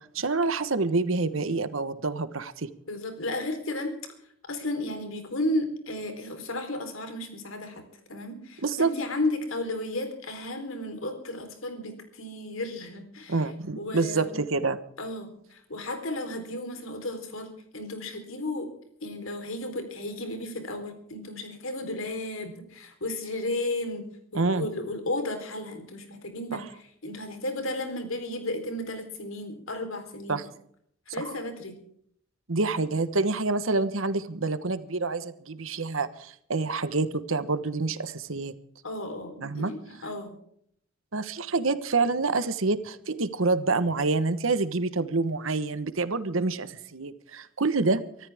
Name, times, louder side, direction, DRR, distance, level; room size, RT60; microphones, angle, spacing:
voice 1, 0.1-2.7 8.6-8.9 13.3-14.8 24.3-24.7 26.5-26.6 30.3-30.4 31.2-31.3 32.5-38.5 39.4-39.7 41.1-48.0, right 3 dB, 80° right, 13 dB, 1.2 m, -27 dB
voice 2, 2.9-3.9 4.5-7.8 8.1-13.4 13.8-14.3 15.0-18.7 19.0-24.1 24.3-30.4 31.1-31.8 38.8-40.4, left 1 dB, 85° left, 6 dB, 4.0 m, -33 dB
24.5 x 14.0 x 3.6 m, 0.67 s
head